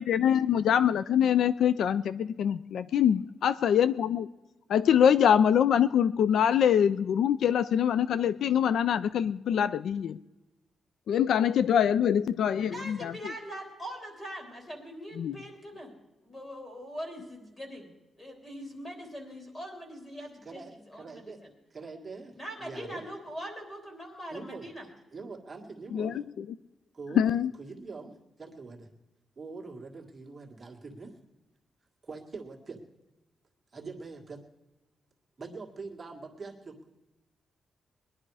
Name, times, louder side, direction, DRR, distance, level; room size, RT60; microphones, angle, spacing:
voice 1, 0.0-4.3 4.7-10.2 11.1-13.1 15.2-15.4 25.9-26.1 27.2-27.5, left 9 dB, 75° left, 15 dB, 0.4 m, -24 dB
voice 2, 12.6-15.9 16.2-17.9 18.2-21.5 22.4-24.9, equal, 20° left, 2 dB, 3.5 m, -42 dB
voice 3, 20.2-21.4 21.7-23.0 24.3-24.7 25.1-26.2 26.9-28.9 29.4-31.2 32.0-32.8 33.7-34.4 35.4-36.9, right 4 dB, 25° right, 0 dB, 1.9 m, -44 dB
20.5 x 11.0 x 4.8 m, 1.0 s
wide cardioid pair, 140°, 0 cm